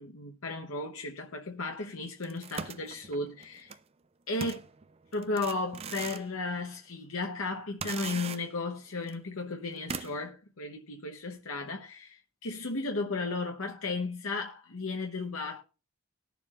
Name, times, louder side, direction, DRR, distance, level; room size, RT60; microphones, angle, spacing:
voice 1, 0.0-3.8 4.3-4.6 5.1-15.6, left 3 dB, 85° left, 1.0 m, -35 dB
sound 1, 2.2-3.8 4.4-6.3 6.7-6.8 7.8-8.7 9.1-9.2 9.9-10.3, right 5 dB, 30° right, 0.5 m, -40 dB
19.5 x 7.0 x 2.4 m
head